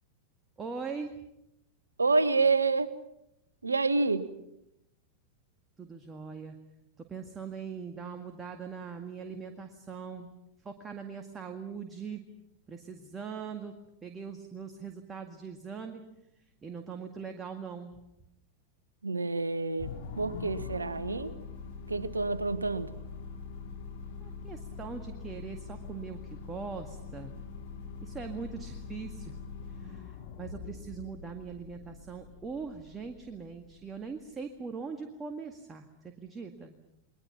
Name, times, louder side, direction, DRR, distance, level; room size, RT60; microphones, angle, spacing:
voice 1, 0.6-1.1 5.8-6.6 7.1-10.3 10.6-12.2 12.7-13.7 14.0-16.0 16.6-17.9 24.2-27.4 28.0-29.4 29.7-36.8, right 5 dB, 20° right, 5 dB, 1.9 m, -41 dB
voice 2, 2.0-2.9 3.6-4.3 19.0-21.3 21.9-22.9, right 3 dB, 80° right, 14 dB, 1.3 m, -28 dB
sound 1, 19.8-34.3, left 5 dB, 50° left, 3.8 m, -43 dB
30.0 x 22.0 x 5.9 m, 0.83 s
figure-of-eight pair, 90°, 0 cm